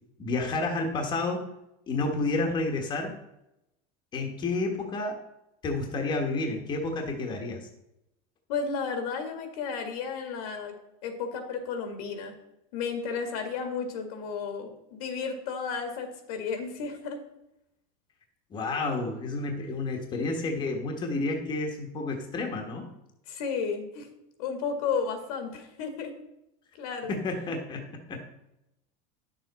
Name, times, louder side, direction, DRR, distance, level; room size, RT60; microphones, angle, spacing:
voice 1, 0.2-1.4 1.9-3.1 4.1-5.2 5.6-7.7 18.5-22.9 27.1-27.8 28.1-28.2, left 3 dB, 25° left, 2 dB, 1.2 m, -30 dB
voice 2, 8.5-10.7 11.0-12.4 12.7-17.2 23.3-24.1 24.4-26.1 26.7-27.1, left 5 dB, 80° left, 6 dB, 1.9 m, -33 dB
10.0 x 6.8 x 4.1 m, 0.87 s
cardioid pair, 165°, 18 cm